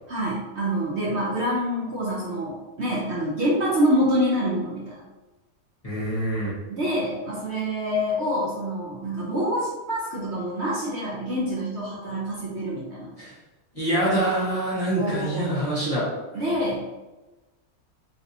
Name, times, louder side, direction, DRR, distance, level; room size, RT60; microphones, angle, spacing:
voice 1, 0.1-5.0 6.7-13.1 15.0-15.6 16.3-16.8, equal, 55° right, -5 dB, 0.8 m, -26 dB
voice 2, 5.8-6.5 13.2-13.4 13.7-16.1, right 1 dB, 30° left, -8 dB, 0.9 m, -25 dB
3.3 x 2.6 x 2.7 m, 1.1 s
omnidirectional pair, 1.6 m